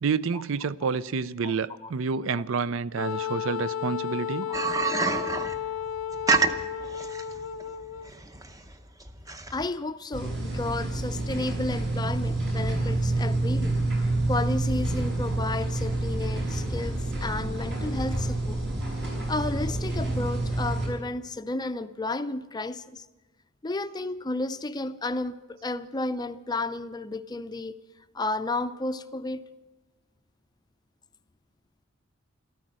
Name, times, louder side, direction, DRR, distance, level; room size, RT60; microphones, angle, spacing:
voice 1, 0.0-4.5, right 5 dB, 70° right, 0.5 m, -29 dB
Wind instrument woodwind instrument, 3.0-8.1, left 9 dB, 85° left, 0.5 m, -33 dB
sound 1, 4.5-9.7, right 4 dB, 15° right, 0.7 m, -28 dB
voice 2, 9.5-13.8 14.3-18.6 19.3-23.0 23.6-27.8 28.1-29.4, left 2 dB, 20° left, 0.5 m, -32 dB
sound 2, 10.1-20.9, right 2 dB, 55° right, 5.6 m, -28 dB
13.5 x 13.5 x 7.6 m
head